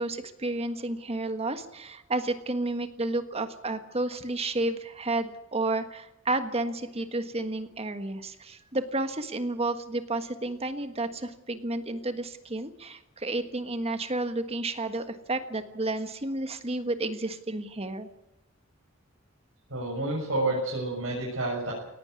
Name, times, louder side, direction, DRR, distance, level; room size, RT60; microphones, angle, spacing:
voice 1, 0.0-18.1, right 2 dB, 30° right, 9 dB, 1.5 m, -31 dB
voice 2, 19.7-21.7, right 2 dB, 70° right, -4 dB, 7.1 m, -29 dB
19.0 x 16.5 x 9.6 m, 0.90 s
head